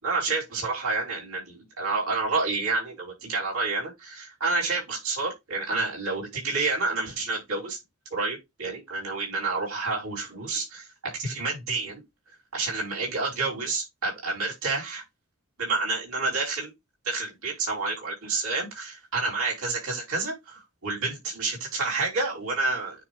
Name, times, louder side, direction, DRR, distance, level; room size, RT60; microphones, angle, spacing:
voice 1, 0.0-7.8 8.1-10.9 11.2-12.0 12.5-15.0 15.6-16.7 17.0-22.9, right 3 dB, 80° right, 4.8 m, -29 dB
9.6 x 3.2 x 3.8 m
head